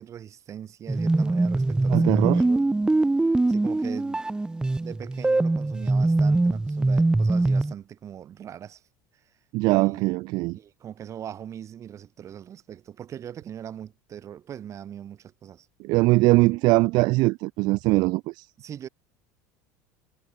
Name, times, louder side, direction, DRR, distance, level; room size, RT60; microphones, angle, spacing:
voice 1, 0.0-2.6 3.5-4.2 4.8-8.8 9.7-10.0 10.5-15.7 18.6-18.9, right 9 dB, 40° right, 6.2 m, -40 dB
sound 1, 0.9-7.7, right 2 dB, 10° right, 1.9 m, -23 dB
voice 2, 1.9-2.4 9.5-10.6 15.8-18.5, right 22 dB, 60° right, 0.6 m, -21 dB
supercardioid pair, 115°, 8 cm